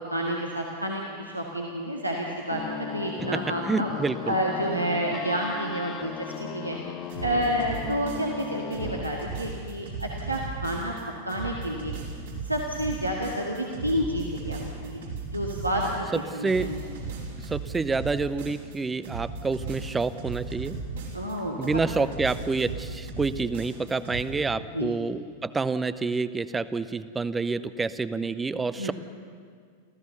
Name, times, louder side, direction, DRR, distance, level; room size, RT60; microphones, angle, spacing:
voice 1, 0.0-3.9 4.3-6.1 6.4-6.8 7.2-10.9 11.3-11.9 12.4-15.1 15.3-16.8 21.1-21.7 22.0-22.1 24.7-24.9 28.8-28.9, equal, 85° right, -1 dB, 1.8 m, -29 dB
sound 1, 2.5-9.0, left 7 dB, 30° left, 0.9 m, -37 dB
voice 2, 3.2-4.3 16.4-16.7 17.4-20.8 21.6-28.9, right 4 dB, 15° right, 15 dB, 0.8 m, -28 dB
sound 2, 7.1-8.4 8.7-11.0 11.3-16.2 16.5-18.8 19.0-21.3 21.6-24.2, right 4 dB, 65° right, 5.1 m, -36 dB
26.5 x 15.5 x 6.9 m, 2.1 s
figure-of-eight pair, 90°, 0 cm